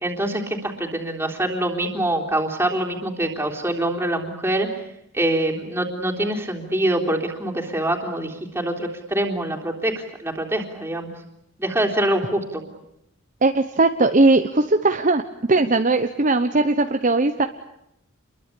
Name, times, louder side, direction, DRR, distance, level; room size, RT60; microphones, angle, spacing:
voice 1, 0.0-4.7 5.1-9.9 10.2-11.1 11.6-12.6, right 1 dB, 10° right, 0 dB, 3.6 m, -24 dB
voice 2, 13.4-15.2 15.5-17.5, right 2 dB, 35° right, 7 dB, 1.0 m, -19 dB
28.5 x 23.0 x 8.5 m, 0.81 s
head